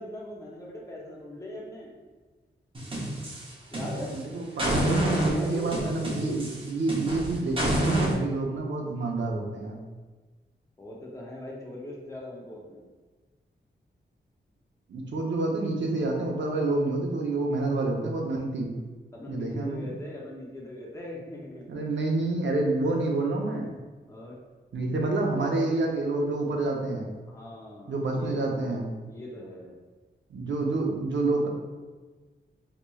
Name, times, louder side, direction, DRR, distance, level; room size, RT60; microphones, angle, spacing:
voice 1, 0.0-1.9 3.7-4.2 4.8-6.2 10.8-12.8 19.1-21.7 24.1-24.4 27.3-29.8, left 1 dB, 15° left, -3 dB, 0.6 m, -40 dB
sound 1, 2.7-4.2 4.6-8.1, right 1 dB, 30° right, 0.7 m, -28 dB
voice 2, 3.9-5.0 5.3-9.8 14.9-18.7 19.3-19.9 21.7-23.7 24.7-27.1 27.9-28.9 30.3-31.5, right 2 dB, 75° right, 0 dB, 0.6 m, -28 dB
4.3 x 2.9 x 2.3 m, 1.3 s
wide cardioid pair, 140°, 19 cm